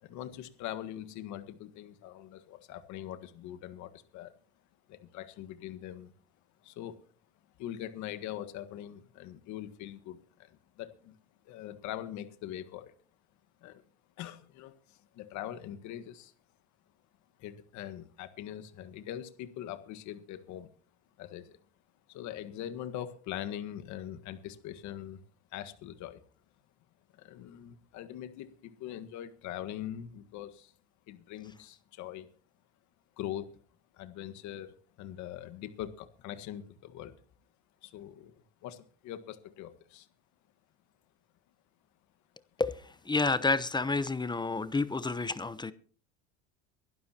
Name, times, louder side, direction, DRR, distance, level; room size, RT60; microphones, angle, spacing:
voice 1, 0.0-4.3 4.9-6.1 6.6-7.0 7.6-11.2 11.4-13.0 13.6-13.8 14.2-16.3 17.4-20.7 21.2-21.6 22.1-25.2 25.5-26.2 27.1-30.7 31.1-32.3 33.2-33.5 33.9-37.1 37.8-40.1, left 11 dB, 60° left, 10 dB, 1.7 m, -42 dB
voice 2, 43.1-45.7, left 3 dB, 15° left, 15 dB, 0.9 m, -29 dB
23.0 x 12.0 x 2.9 m, 0.42 s
supercardioid pair, 95°, 32 cm